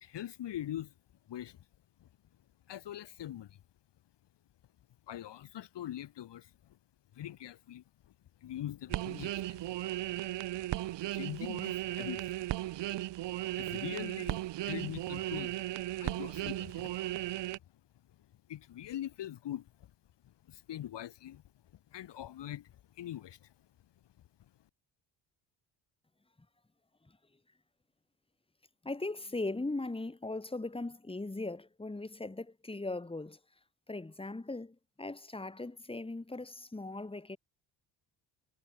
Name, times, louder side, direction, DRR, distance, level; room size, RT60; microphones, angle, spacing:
voice 1, 0.0-0.9 1.3-1.6 2.0-2.1 2.7-3.6 5.1-6.8 7.1-7.8 8.4-9.7 11.1-12.2 13.5-15.5 16.0-17.0 18.5-19.9 20.2-21.4 21.9-23.5, left 12 dB, 65° left, 2.8 m, -43 dB
sound 1, 8.9-17.6, right 15 dB, 65° right, 1.1 m, -36 dB
voice 2, 28.8-33.4 33.9-37.4, left 2 dB, 10° left, 3.4 m, -39 dB
cardioid pair, 105°, 46 cm